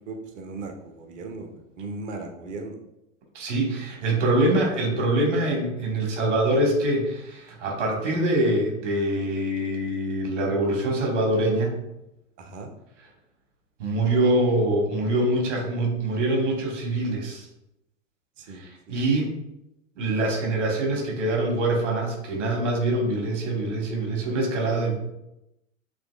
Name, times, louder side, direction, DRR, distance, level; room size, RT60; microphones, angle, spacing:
voice 1, 0.1-2.8 12.4-12.7 18.4-19.0, right 3 dB, 20° right, 5 dB, 0.5 m, -37 dB
voice 2, 3.3-11.8 13.8-17.5 18.5-19.3 20.0-24.9, right 1 dB, 60° right, 0 dB, 1.7 m, -24 dB
7.3 x 3.0 x 2.4 m, 0.89 s
figure-of-eight pair, 95°, 40 cm